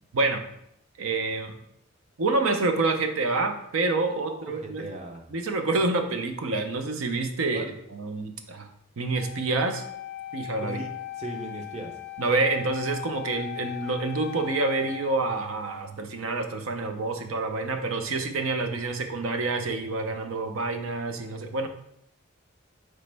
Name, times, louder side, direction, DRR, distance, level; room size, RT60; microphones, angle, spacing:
voice 1, 1.0-1.5 2.2-4.8 5.3-7.6 7.9-8.7 9.0-9.8 10.3-10.8 12.2-21.7, right 3 dB, 75° right, 6 dB, 0.6 m, -27 dB
voice 2, 4.2-5.2 7.5-7.7 10.6-10.9 11.2-11.9, right 1 dB, 30° right, 3 dB, 0.6 m, -37 dB
Wind instrument woodwind instrument, 9.1-15.1, left 14 dB, 50° left, 0.5 m, -38 dB
5.0 x 3.2 x 3.3 m, 0.76 s
head